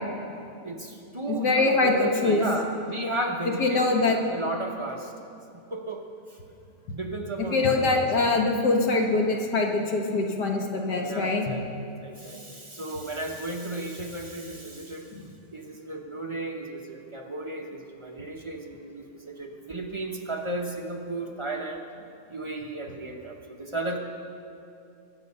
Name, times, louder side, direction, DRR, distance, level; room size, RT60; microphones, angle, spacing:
voice 1, 0.6-5.1 5.7-6.0 6.9-8.0 11.0-15.1 15.5-21.8 22.3-24.0, right 2 dB, 25° right, 1 dB, 0.6 m, -34 dB
voice 2, 1.3-2.4 3.6-4.2 7.5-11.5 15.1-15.2, left 3 dB, 85° left, 2 dB, 1.9 m, -23 dB
Drum, 11.5-13.2, left 4 dB, 45° left, 0.6 m, -41 dB
20.0 x 7.2 x 5.5 m, 2.6 s
omnidirectional pair, 1.7 m